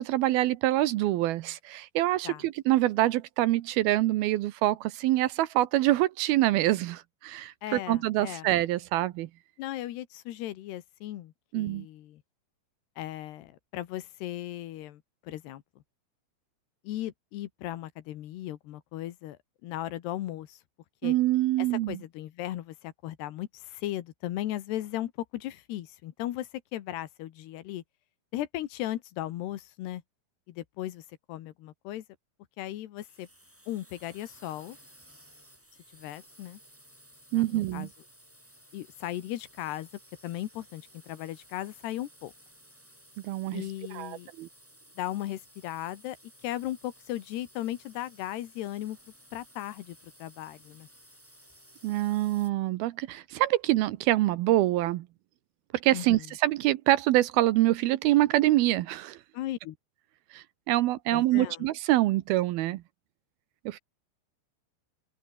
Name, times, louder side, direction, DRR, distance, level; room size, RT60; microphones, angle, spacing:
voice 1, 0.0-9.3 11.5-11.9 21.0-22.0 37.3-37.9 43.2-43.6 43.9-44.5 51.8-55.1 55.8-59.2 60.3-62.8 63.7-63.8, right 16 dB, 75° right, 2.6 m, -25 dB
voice 2, 7.6-8.5 9.6-12.2 13.0-15.6 16.9-19.4 19.6-20.6 21.0-21.2 21.6-27.8 28.3-30.0 30.5-32.0 32.6-33.3 33.7-34.8 35.9-36.6 37.3-37.9 38.7-39.9 40.2-42.3 43.5-44.3 45.0-46.2 46.4-49.0 49.3-50.9 55.9-56.3 59.3-59.8 61.1-61.7, left 14 dB, 85° left, 3.5 m, -37 dB
sound 1, 33.0-52.5, equal, 5° right, 6.7 m, -57 dB
omnidirectional pair, 4.6 m